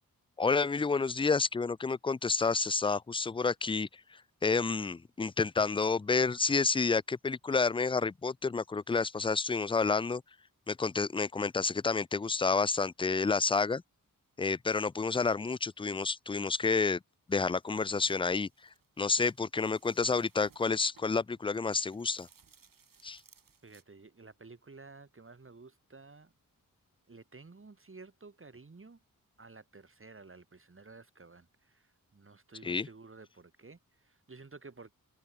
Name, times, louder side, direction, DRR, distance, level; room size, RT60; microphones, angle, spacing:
voice 1, 0.4-3.9 4.4-10.2 10.7-13.8 14.4-17.0 17.3-18.5 19.0-22.3 23.0-23.2 32.6-32.9, left 4 dB, 15° left, 0.4 m, -29 dB
sound 1, 17.3-23.8, right 6 dB, 65° right, 4.5 m, -65 dB
voice 2, 23.6-26.3 27.1-29.0 29.4-34.9, right 3 dB, 35° right, 2.9 m, -53 dB
cardioid pair, 75°, 35 cm